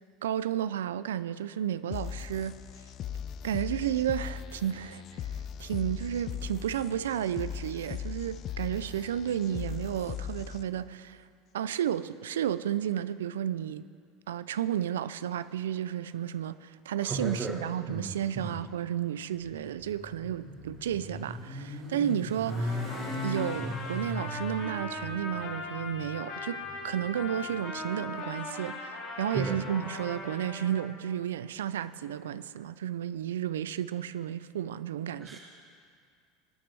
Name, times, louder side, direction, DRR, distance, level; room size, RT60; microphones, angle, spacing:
voice 1, 0.2-2.6 3.4-5.2 5.6-11.2 11.5-13.8 14.3-22.9 23.2-35.4, right 10 dB, 85° right, 0.3 m, -32 dB
sound 1, 1.9-10.9, left 8 dB, 50° left, 0.4 m, -39 dB
voice 2, 17.0-17.6 17.9-18.6 29.3-29.6 35.2-35.4, right 3 dB, 30° right, 1.3 m, -34 dB
Motorcycle, 19.4-27.6, left 1 dB, 50° right, 3.2 m, -38 dB
Trumpet, 22.5-30.9, left 2 dB, 70° left, 3.4 m, -39 dB
19.5 x 9.4 x 3.4 m
hypercardioid pair, 90°, 0 cm